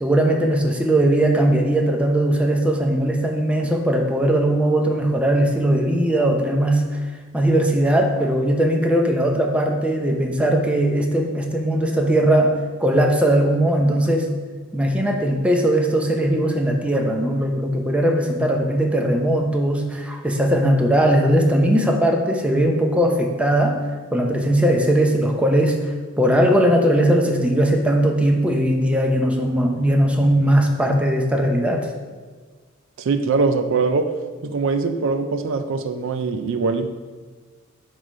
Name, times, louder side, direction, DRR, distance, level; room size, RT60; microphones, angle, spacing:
voice 1, 0.0-7.0 7.3-14.3 14.7-23.8 24.1-31.9, right 1 dB, 5° right, 2 dB, 0.6 m, -19 dB
voice 2, 33.0-34.1 34.4-36.9, right 4 dB, 65° right, 8 dB, 0.4 m, -22 dB
7.6 x 3.2 x 5.2 m, 1.4 s
head